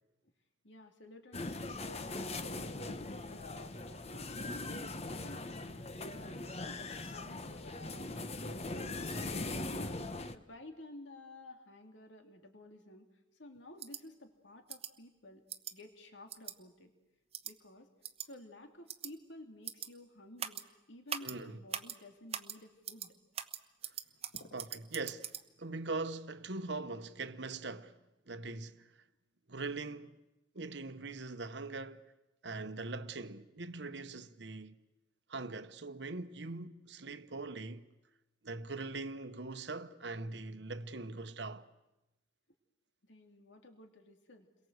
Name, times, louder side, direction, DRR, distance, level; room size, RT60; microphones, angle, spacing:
voice 1, 0.6-5.5 6.0-9.8 10.3-13.1 13.3-15.4 15.7-16.9 17.4-17.9 18.2-23.1 24.3-24.6 43.1-44.5, left 2 dB, 70° left, 2.6 m, -53 dB
sound 1, 1.3-10.3, left 2 dB, 35° left, 1.0 m, -40 dB
sound 2, 13.8-14.0 14.7-14.9 15.5-15.7 16.3-16.5 17.3-17.5 18.0-18.3 18.9-19.1 19.6-19.9 20.4-20.6 21.1-21.3 21.7-22.0 22.3-22.6 22.8-23.1 23.3-25.4, right 9 dB, 35° right, 1.1 m, -41 dB
voice 2, 21.2-21.6 24.5-28.0 28.3-29.0 29.5-30.2 30.5-32.1 32.4-34.8 35.3-37.9 38.4-41.7, right 3 dB, 65° right, 1.1 m, -42 dB
30.0 x 22.5 x 8.0 m
head